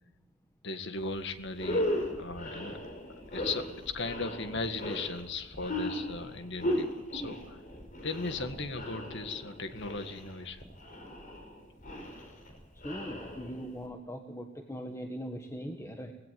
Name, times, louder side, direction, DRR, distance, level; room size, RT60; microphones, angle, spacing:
voice 1, 0.6-1.9 2.2-2.8 3.3-3.7 3.9-7.6 8.0-10.6, left 3 dB, 60° left, 9 dB, 1.9 m, -37 dB
sound 1, 1.0-1.1 1.5-13.8, equal, 40° left, 5.0 m, -37 dB
voice 2, 12.8-16.1, equal, 15° left, 4 dB, 1.4 m, -40 dB
19.5 x 17.0 x 9.3 m, 1.0 s
head